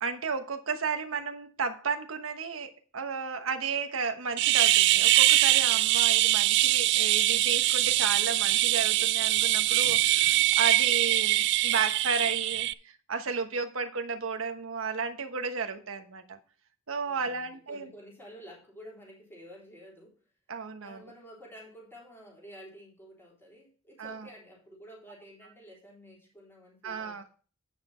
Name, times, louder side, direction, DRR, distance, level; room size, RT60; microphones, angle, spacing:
voice 1, 0.0-16.4 16.9-17.9 20.5-21.0 24.0-24.3 26.8-27.2, right 5 dB, 90° right, 1.1 m, -33 dB
sound 1, 4.4-12.7, right 15 dB, 60° right, 0.3 m, -23 dB
voice 2, 17.0-20.2 20.8-27.2, equal, 10° left, 3.7 m, -50 dB
9.5 x 6.2 x 4.4 m
head